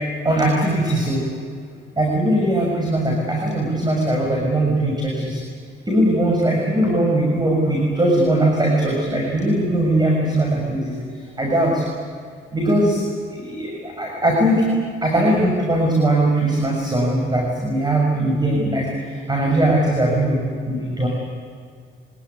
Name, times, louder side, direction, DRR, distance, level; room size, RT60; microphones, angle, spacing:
voice 1, 0.2-1.2 2.0-5.4 5.9-10.9 11.4-11.8 12.5-13.0 13.3-14.7 15.0-18.9 19.3-21.1, right 1 dB, 20° right, -1 dB, 6.7 m, -20 dB
25.5 x 19.5 x 9.9 m, 2.2 s
cardioid pair, 90°, 20 cm